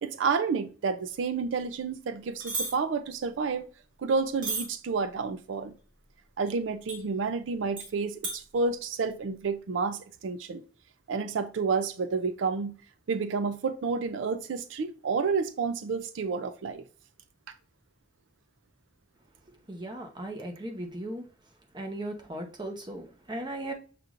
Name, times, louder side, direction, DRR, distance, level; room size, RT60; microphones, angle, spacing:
voice 1, 0.0-3.7 4.0-5.7 6.4-10.6 11.1-12.7 13.1-16.8, right 5 dB, 85° right, 0.4 m, -30 dB
sound 1, 2.4-2.7 4.4-4.7 6.9-7.0 7.8-7.9 8.2-8.4, right 3 dB, 70° right, 1.5 m, -32 dB
voice 2, 19.7-21.2 21.7-23.7, right 1 dB, 25° right, 0.8 m, -37 dB
6.7 x 3.0 x 2.5 m
head